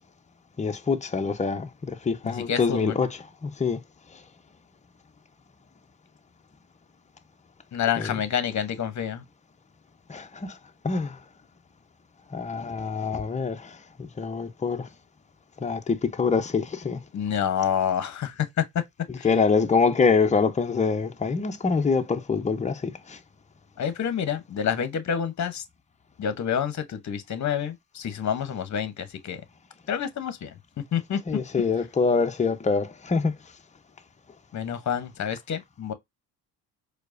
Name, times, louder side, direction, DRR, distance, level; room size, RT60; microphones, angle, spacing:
voice 1, 0.6-3.8 4.1-4.2 7.9-8.2 10.1-10.6 10.8-11.2 12.3-14.9 15.6-17.0 19.1-23.2 31.3-33.3, left 5 dB, 15° left, 0.7 m, -25 dB
voice 2, 2.2-2.9 7.7-9.2 17.1-18.5 19.2-19.3 23.8-25.6 26.2-29.4 29.9-30.5 30.9-31.2 34.5-35.9, left 8 dB, 40° left, 0.9 m, -28 dB
4.6 x 2.3 x 2.5 m
supercardioid pair, 65°, 46 cm